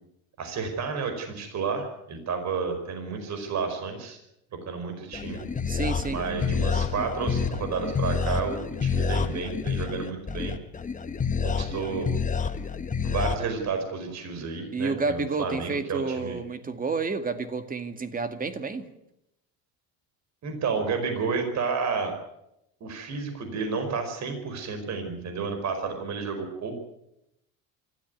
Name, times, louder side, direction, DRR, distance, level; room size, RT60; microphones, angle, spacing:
voice 1, 0.4-4.2 4.6-5.5 6.1-10.5 11.4-12.1 13.0-16.3 20.4-22.1 22.8-26.8, right 5 dB, 45° right, 7 dB, 4.9 m, -31 dB
sound 1, 5.1-13.4, left 5 dB, 20° left, 1.6 m, -28 dB
voice 2, 5.7-6.2 14.7-18.9, right 4 dB, 20° right, 9 dB, 2.0 m, -30 dB
26.0 x 13.5 x 9.5 m, 0.85 s
cardioid pair, 125°, 39 cm